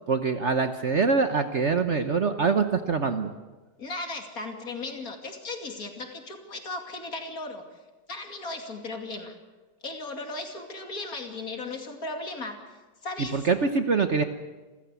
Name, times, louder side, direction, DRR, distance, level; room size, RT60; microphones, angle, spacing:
voice 1, 0.1-3.3 13.3-14.2, right 4 dB, 45° right, 8 dB, 1.1 m, -24 dB
voice 2, 3.8-7.6 8.1-9.3 9.8-12.6 13.0-13.5, left 2 dB, 50° left, 4 dB, 3.0 m, -36 dB
27.5 x 15.0 x 8.3 m, 1.2 s
omnidirectional pair, 1.9 m